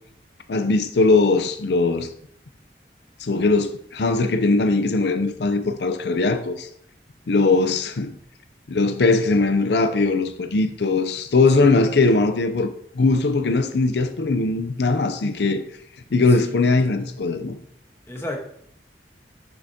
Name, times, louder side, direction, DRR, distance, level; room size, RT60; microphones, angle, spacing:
voice 1, 0.5-2.1 3.2-6.7 7.3-8.2 8.7-15.6 16.1-17.6, left 3 dB, 75° left, 0.5 m, -20 dB
voice 2, 7.3-7.7 11.6-11.9 16.3-16.6 18.1-18.4, left 1 dB, 15° left, 1.1 m, -35 dB
7.6 x 6.2 x 2.8 m
head